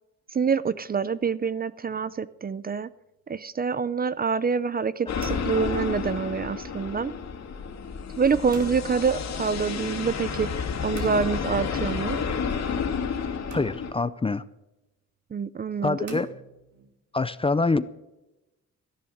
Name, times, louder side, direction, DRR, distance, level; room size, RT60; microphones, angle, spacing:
voice 1, 0.3-2.9 3.3-7.1 8.2-12.2 15.3-16.2, right 5 dB, 30° right, 18 dB, 0.5 m, -26 dB
sound 1, 1.8-2.4 4.9-6.2 8.5-9.1 11.0-11.9 13.5-14.2 16.1-17.0, right 5 dB, 65° right, 2.7 m, -44 dB
sound 2, 5.1-13.9, left 6 dB, 60° left, 2.5 m, -30 dB
voice 2, 13.5-14.4 15.8-16.3 17.1-17.9, left 3 dB, 20° left, 15 dB, 0.5 m, -25 dB
14.5 x 10.5 x 6.5 m, 0.97 s
wide cardioid pair, 140°, 31 cm